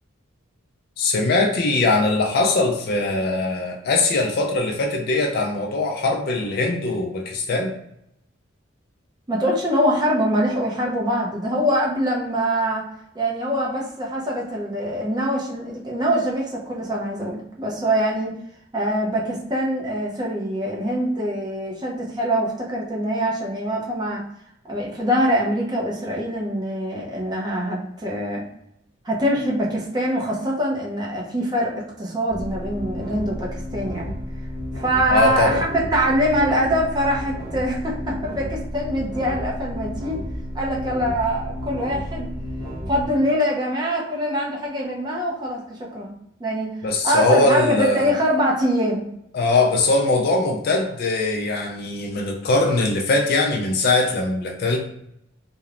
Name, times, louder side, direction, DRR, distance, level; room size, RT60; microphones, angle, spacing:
voice 1, 1.0-7.7 35.1-35.7 46.8-48.1 49.3-54.8, left 2 dB, 50° left, 2 dB, 0.3 m, -21 dB
voice 2, 9.3-12.9 13.1-18.3 18.7-24.2 24.7-28.4 29.0-34.1 34.7-40.2 40.5-42.3 42.9-46.1 46.4-49.1, equal, 20° right, -3 dB, 0.5 m, -24 dB
sound 1, 32.3-43.1, equal, 80° right, 0.7 m, -32 dB
3.0 x 2.0 x 2.4 m, 0.76 s
head